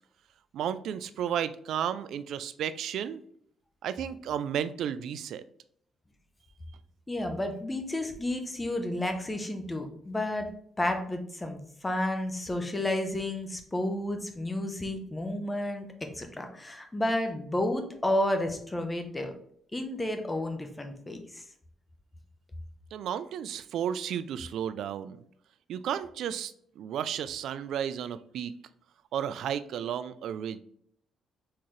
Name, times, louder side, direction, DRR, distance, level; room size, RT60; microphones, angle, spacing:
voice 1, 0.5-3.2 3.8-5.4 22.9-25.2 25.7-28.5 29.1-30.6, right 9 dB, 75° right, 13 dB, 0.3 m, -33 dB
voice 2, 7.1-10.5 10.8-15.9 16.1-19.3 19.7-21.4, left 1 dB, 15° left, 5 dB, 0.8 m, -31 dB
4.4 x 3.6 x 3.1 m, 0.65 s
cardioid pair, 90°, 0 cm